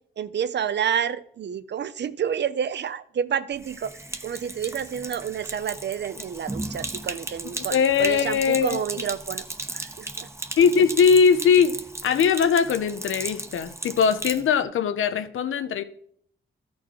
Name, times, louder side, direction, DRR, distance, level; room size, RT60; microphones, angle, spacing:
voice 1, 0.2-10.3, right 8 dB, 60° right, 0.5 m, -29 dB
Sink (filling or washing), 3.5-14.5, right 2 dB, 15° right, 0.7 m, -36 dB
voice 2, 7.6-8.8 10.6-11.7 12.0-15.8, left 6 dB, 75° left, 0.7 m, -20 dB
13.0 x 4.3 x 4.6 m
cardioid pair, 75°, 21 cm